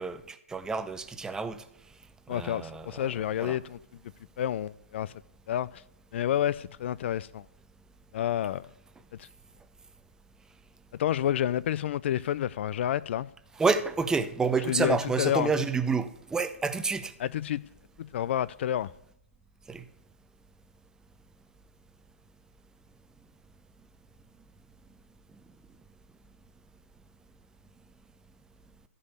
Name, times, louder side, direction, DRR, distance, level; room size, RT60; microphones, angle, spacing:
voice 1, 0.0-1.6 2.3-3.1 3.4-3.6 13.6-17.1 19.7-19.8, right 4 dB, 10° right, 0.7 m, -29 dB
voice 2, 2.3-3.8 4.4-5.1 5.5-5.8 6.1-7.4 8.1-8.7 9.2-9.3 10.9-13.3 14.7-15.5 17.2-17.7 18.0-18.9, left 11 dB, 50° left, 0.4 m, -29 dB
14.0 x 5.3 x 8.3 m
hypercardioid pair, 130°, 8 cm